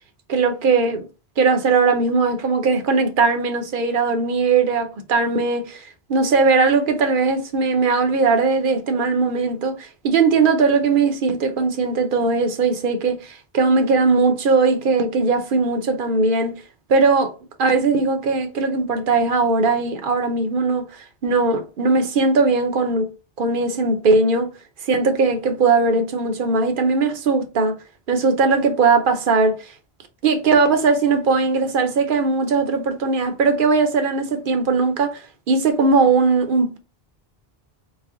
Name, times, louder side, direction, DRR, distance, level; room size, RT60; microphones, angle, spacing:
voice 1, 0.3-1.1 1.4-5.8 6.1-16.6 16.9-17.3 17.6-20.9 21.2-23.1 23.4-24.5 24.9-27.8 28.1-29.6 30.2-35.2 35.5-36.8, right 4 dB, 60° right, 0.8 m, -19 dB
4.1 x 2.1 x 3.5 m
omnidirectional pair, 1.1 m